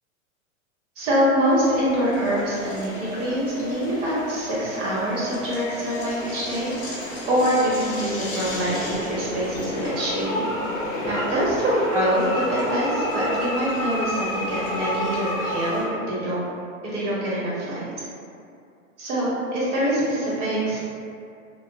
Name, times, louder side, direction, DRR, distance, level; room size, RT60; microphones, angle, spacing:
voice 1, 1.0-7.0 7.3-10.5 11.0-16.4 16.8-17.9 19.0-20.8, equal, 60° right, -7 dB, 1.1 m, -25 dB
sound 1, 1.5-15.9, left 1 dB, 20° left, 0.4 m, -31 dB
2.3 x 2.2 x 2.7 m, 2.4 s
hypercardioid pair, 130°, 41 cm